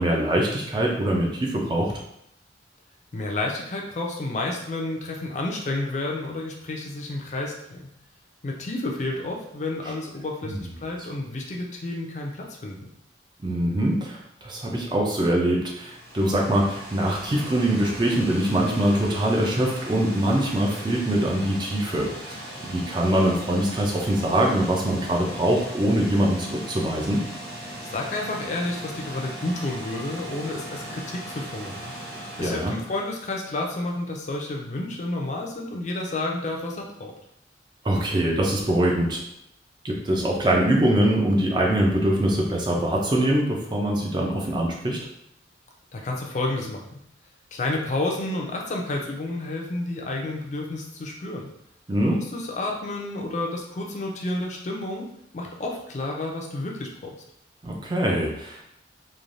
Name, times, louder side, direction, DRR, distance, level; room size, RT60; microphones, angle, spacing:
voice 1, 0.0-1.9 10.5-10.6 13.4-27.2 32.4-32.7 37.8-39.2 39.8-45.0 51.9-52.2 57.6-58.6, right 1 dB, 25° right, -1 dB, 0.4 m, -23 dB
voice 2, 3.1-7.8 8.4-12.9 27.9-31.9 32.4-37.1 45.9-46.9 47.5-51.5 52.0-57.1, left 2 dB, 40° left, 0 dB, 0.4 m, -30 dB
sound 1, 15.5-33.7, right 1 dB, 55° right, 0.8 m, -39 dB
3.1 x 2.2 x 2.5 m, 0.77 s
head